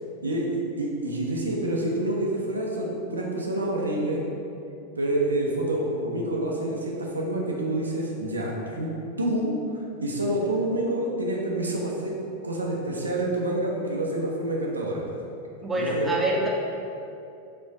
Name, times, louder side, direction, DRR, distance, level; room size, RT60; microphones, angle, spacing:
voice 1, 0.2-4.2 5.0-8.9 9.2-9.5 10.0-12.1 12.4-15.0 15.5-16.1, right 1 dB, 75° right, -2 dB, 0.5 m, -27 dB
voice 2, 15.6-16.5, right 1 dB, 15° right, -2 dB, 0.6 m, -25 dB
4.2 x 2.5 x 4.0 m, 2.7 s
figure-of-eight pair, 90°, 0 cm